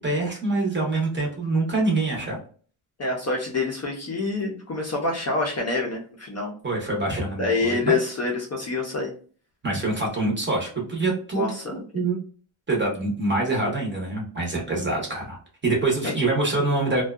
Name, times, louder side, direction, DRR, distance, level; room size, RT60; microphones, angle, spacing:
voice 1, 0.0-2.4 6.6-8.0 9.6-12.2 12.7-15.4 15.6-17.0, right 2 dB, 25° right, -1 dB, 0.7 m, -25 dB
voice 2, 3.0-6.5 7.4-9.1 11.3-11.8 16.0-16.1, left 3 dB, 35° left, -1 dB, 0.4 m, -26 dB
2.6 x 2.2 x 2.3 m, 0.43 s
wide cardioid pair, 175°, 48 cm